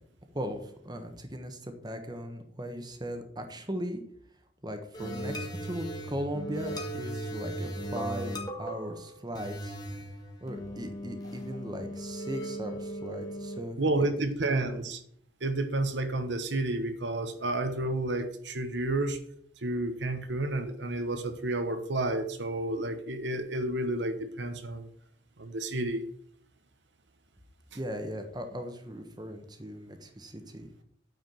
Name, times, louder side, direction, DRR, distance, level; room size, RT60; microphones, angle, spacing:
voice 1, 0.3-4.0 4.6-9.8 10.4-14.1 14.5-14.8 27.7-30.7, equal, 25° right, 6 dB, 1.3 m, -38 dB
sound 1, 4.9-13.6, right 1 dB, 20° left, 1.9 m, -38 dB
voice 2, 13.8-15.0 15.4-19.2 19.6-24.9 25.4-26.0, right 2 dB, 75° right, 8 dB, 1.1 m, -30 dB
9.4 x 4.9 x 7.7 m, 0.64 s
head